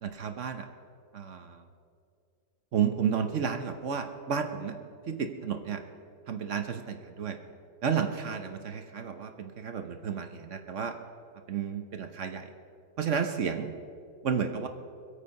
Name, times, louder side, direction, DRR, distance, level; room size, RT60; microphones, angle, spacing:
voice 1, 0.0-0.7 1.1-1.6 2.7-4.8 5.1-5.8 6.3-7.4 7.8-11.0 11.5-12.5 13.0-13.7 14.2-14.7, right 7 dB, 55° right, 6 dB, 0.8 m, -32 dB
24.5 x 8.5 x 5.4 m, 2.5 s
omnidirectional pair, 2.1 m